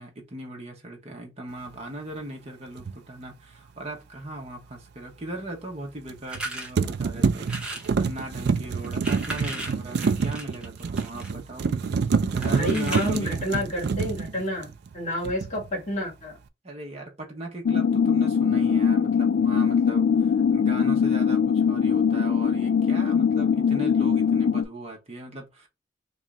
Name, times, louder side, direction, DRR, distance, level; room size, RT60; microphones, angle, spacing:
voice 1, 0.0-7.5 8.0-11.7 12.3-13.4 16.6-25.7, right 1 dB, 35° right, 1.0 m, -38 dB
sound 1, 2.8-3.0 6.1-6.4 6.8-14.9 15.2-15.7, right 5 dB, 60° right, 0.4 m, -27 dB
sound 2, 6.3-6.7 7.4-7.9 8.8-11.3 12.4-13.4, right 2 dB, 5° right, 0.8 m, -36 dB
voice 2, 12.2-16.3, left 1 dB, 40° left, 2.0 m, -29 dB
sound 3, 17.6-24.6, left 7 dB, 65° left, 0.3 m, -22 dB
3.1 x 2.7 x 3.5 m
head